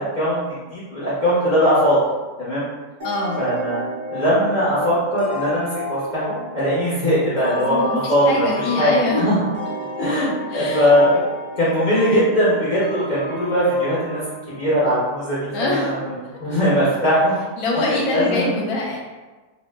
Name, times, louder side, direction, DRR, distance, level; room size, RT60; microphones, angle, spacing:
voice 1, 0.0-2.0 2.4-2.6 3.4-9.3 10.0-11.2 11.6-14.2 14.5-16.0 16.4-17.3 17.8-18.5, equal, 45° left, -10 dB, 0.6 m, -20 dB
voice 2, 3.0-3.4 7.6-9.2 10.5-10.9 15.5-15.9 16.4-16.5 17.6-19.0, left 2 dB, 75° left, -2 dB, 1.0 m, -24 dB
sound 1, 3.0-15.4, equal, 80° right, 0.4 m, -32 dB
2.6 x 2.0 x 3.3 m, 1.2 s
omnidirectional pair, 1.7 m